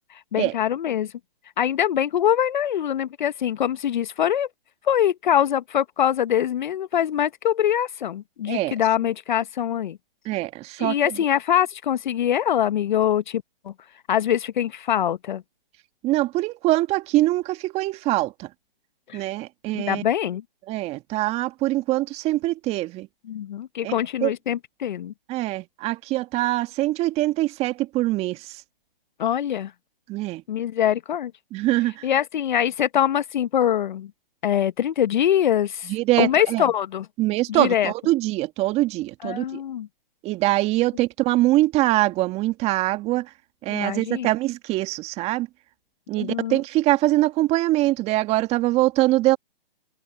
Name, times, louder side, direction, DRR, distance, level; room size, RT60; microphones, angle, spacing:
voice 1, 0.1-1.1 1.6-4.5 4.8-10.0 10.8-13.7 14.1-15.4 19.1-19.2 19.8-20.4 23.2-25.1 29.2-29.7 30.5-31.3 32.0-34.1 34.4-35.9 36.2-37.1 37.5-37.9 39.2-39.9 43.7-44.3 46.2-46.6, left 10 dB, 55° left, 0.9 m, -23 dB
voice 2, 10.3-11.2 16.0-18.5 19.1-20.0 20.7-23.1 23.8-23.9 24.2-24.3 25.3-28.6 30.1-30.4 31.5-32.1 35.9-36.7 37.2-39.6 40.2-43.3 43.6-45.5 46.1-49.4, right 17 dB, 20° right, 2.0 m, -23 dB
hypercardioid pair, 140°, 29 cm